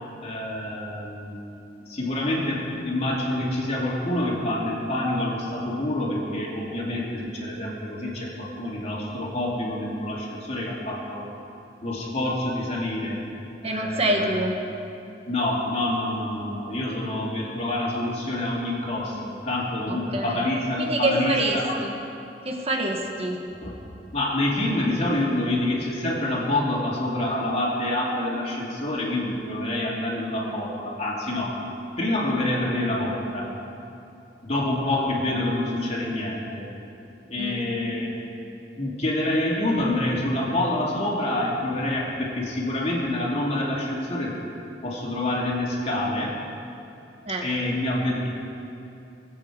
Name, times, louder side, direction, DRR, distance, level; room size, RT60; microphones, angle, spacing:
voice 1, 0.2-1.4 1.9-11.2 11.8-13.2 13.6-14.3 15.3-21.7 23.6-23.7 24.1-31.5 32.0-33.5 34.4-36.6 37.3-38.1 38.8-44.3 44.8-46.3 47.4-48.3, left 1 dB, 40° left, -4 dB, 2.6 m, -27 dB
voice 2, 13.6-14.5 19.9-20.4 20.8-21.9 22.4-23.4 37.4-37.6 47.2-47.5, right 1 dB, 35° right, 2 dB, 1.5 m, -26 dB
22.0 x 8.0 x 5.0 m, 2.8 s
head